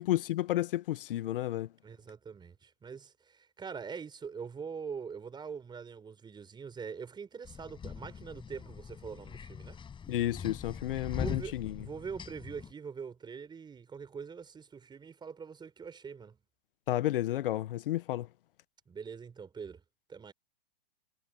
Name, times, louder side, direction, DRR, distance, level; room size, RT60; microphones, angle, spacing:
voice 1, 0.0-1.7 10.1-11.7 16.9-18.3, left 14 dB, 65° left, 1.1 m, -31 dB
voice 2, 1.8-9.8 11.2-16.4 18.9-19.8 20.1-20.3, right 6 dB, 15° right, 5.2 m, -43 dB
sound 1, 7.4-12.7, left 6 dB, 15° left, 5.4 m, -42 dB
hypercardioid pair, 125°, 30 cm